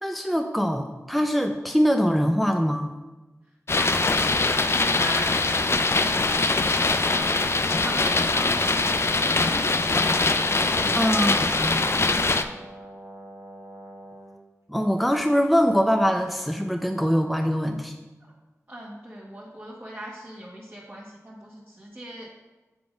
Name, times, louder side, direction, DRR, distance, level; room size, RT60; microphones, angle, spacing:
voice 1, 0.0-2.9 10.9-11.8 14.7-17.9, equal, ahead, 4 dB, 0.6 m, -23 dB
sound 1, 3.7-12.4, left 3 dB, 50° left, 0.4 m, -22 dB
voice 2, 3.7-4.6 4.8-9.9 10.6-12.5 18.7-22.3, equal, 25° right, -5 dB, 1.3 m, -40 dB
Brass instrument, 7.4-14.4, right 1 dB, 65° right, 1.4 m, -43 dB
7.9 x 3.4 x 5.1 m, 1.1 s
cardioid pair, 45°, 6 cm